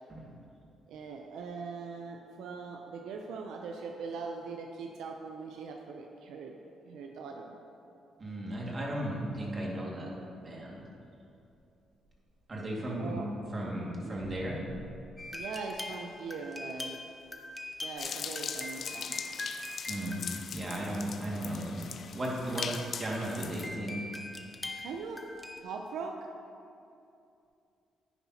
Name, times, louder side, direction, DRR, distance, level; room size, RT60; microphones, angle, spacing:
voice 1, 0.9-6.6 6.8-7.6 13.0-13.5 14.0-14.2 15.3-17.0 17.8-19.2 24.8-25.2 25.6-26.2, right 4 dB, 80° right, 2 dB, 0.6 m, -41 dB
voice 2, 8.2-10.1 10.4-10.8 12.5-13.2 13.5-14.6 19.9-20.2 20.5-21.8 22.1-24.0, right 1 dB, 35° right, -3 dB, 2.1 m, -35 dB
sound 1, 15.2-21.5 22.4-25.6, left 2 dB, 15° left, 0.8 m, -43 dB
sound 2, 18.0-23.7, left 7 dB, 55° left, 0.5 m, -40 dB
10.0 x 9.6 x 2.9 m, 2.6 s
cardioid pair, 90°, 0 cm